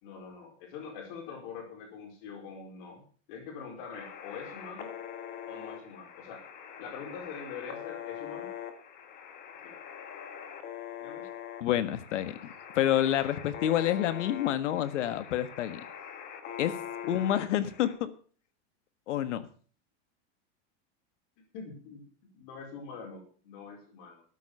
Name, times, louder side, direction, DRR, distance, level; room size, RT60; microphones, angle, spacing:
voice 1, 0.0-5.0 5.5-6.5 6.8-8.5 9.6-9.8 11.0-11.3 16.6-16.7 17.0-17.2 21.5-22.0 22.3-24.2, left 5 dB, 45° left, 3 dB, 4.8 m, -44 dB
sound 1, 3.9-17.9, left 9 dB, 25° left, 1.6 m, -43 dB
voice 2, 11.6-12.4 12.7-15.8 16.6-16.7 17.1-18.1 19.1-19.5, left 11 dB, 85° left, 13 dB, 1.6 m, -28 dB
13.0 x 9.3 x 6.7 m, 0.43 s
supercardioid pair, 170°, 35 cm